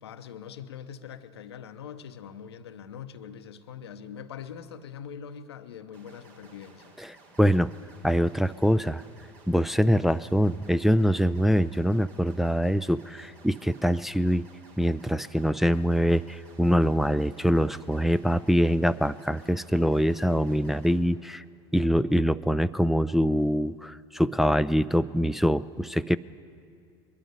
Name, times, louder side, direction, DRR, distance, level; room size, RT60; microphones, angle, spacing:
voice 1, 0.0-7.0, left 8 dB, 85° left, 9 dB, 0.8 m, -43 dB
sound 1, 5.9-21.0, right 3 dB, 60° right, 3.1 m, -55 dB
voice 2, 7.4-7.7 8.0-9.0 9.5-14.5 14.8-21.4 21.7-26.2, equal, ahead, 12 dB, 0.3 m, -24 dB
21.5 x 12.0 x 5.5 m, 2.3 s
hypercardioid pair, 75°, 13 cm